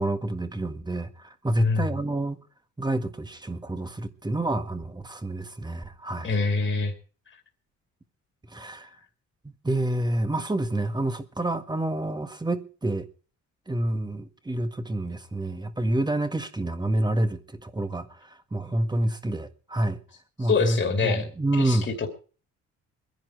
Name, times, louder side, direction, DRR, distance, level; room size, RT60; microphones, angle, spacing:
voice 1, 0.0-2.4 2.8-6.3 8.5-8.9 9.4-13.1 13.7-18.2 18.5-20.0 20.4-21.9, right 1 dB, 15° right, 1.6 m, -28 dB
voice 2, 1.6-1.9 6.2-6.9 20.4-21.3 21.6-22.1, left 4 dB, 40° left, 2.7 m, -25 dB
21.5 x 11.0 x 4.6 m
cardioid pair, 90°, 30 cm